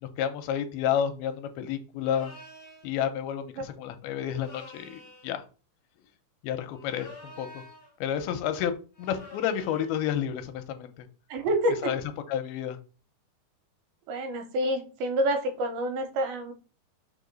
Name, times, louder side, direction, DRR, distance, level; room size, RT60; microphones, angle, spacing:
voice 1, 0.0-2.3 2.8-5.4 6.4-7.6 8.0-11.1 11.8-12.0 12.3-12.8, left 9 dB, 85° left, 9 dB, 2.6 m, -30 dB
sound 1, 2.0-2.9 4.3-5.4 6.7-8.0 8.9-10.0, left 2 dB, 45° left, 2.3 m, -48 dB
voice 2, 11.3-11.9 14.1-16.5, right 1 dB, 80° right, 6 dB, 2.8 m, -28 dB
4.8 x 4.7 x 5.2 m, 0.36 s
omnidirectional pair, 4.4 m